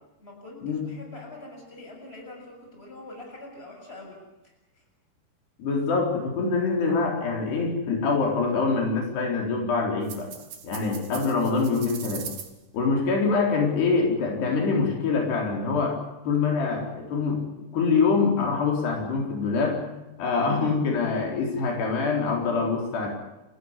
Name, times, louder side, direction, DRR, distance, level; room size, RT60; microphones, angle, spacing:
voice 1, 0.2-4.8, left 2 dB, 15° left, 1 dB, 7.3 m, -44 dB
voice 2, 5.6-10.3 10.6-12.2 12.7-16.0 16.3-17.4 17.7-19.8 20.2-23.1, left 4 dB, 75° left, 0 dB, 6.2 m, -24 dB
sound 1, 10.0-12.5, right 8 dB, 55° right, 3.8 m, -40 dB
29.0 x 15.0 x 9.8 m, 1.0 s
omnidirectional pair, 4.8 m